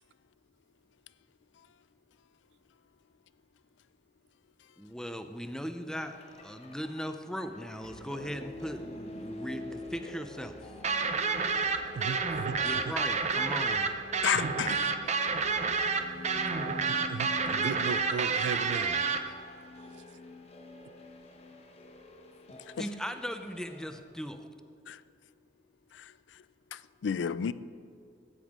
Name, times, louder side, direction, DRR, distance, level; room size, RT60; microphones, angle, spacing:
voice 1, 4.8-10.7 12.6-13.9 22.8-24.5, equal, 5° left, 0.5 m, -38 dB
sound 1, 5.9-24.0, left 2 dB, 35° left, 0.9 m, -46 dB
sound 2, 10.8-19.2, right 5 dB, 40° right, 0.7 m, -29 dB
voice 2, 11.9-12.6 12.9-13.0 14.4-14.5 16.9-19.0 19.9-20.0, right 6 dB, 70° right, 0.3 m, -36 dB
voice 3, 14.2-14.9 24.9-25.0 27.0-27.5, left 8 dB, 80° left, 0.4 m, -30 dB
14.0 x 9.1 x 3.6 m
head